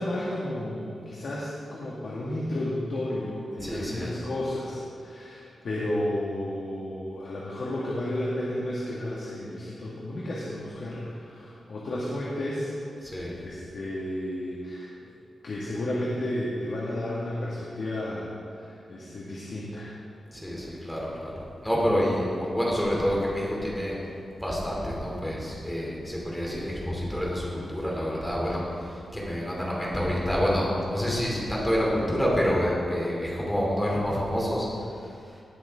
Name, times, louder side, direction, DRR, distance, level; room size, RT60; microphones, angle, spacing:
voice 1, 0.0-12.8 13.4-15.1 15.4-20.0, left 1 dB, 60° left, -6 dB, 1.9 m, -32 dB
voice 2, 3.6-4.1 13.0-13.4 20.3-24.0 24.4-35.4, equal, 5° left, -4 dB, 2.8 m, -28 dB
19.0 x 8.4 x 3.7 m, 2.6 s
wide cardioid pair, 170°, 0 cm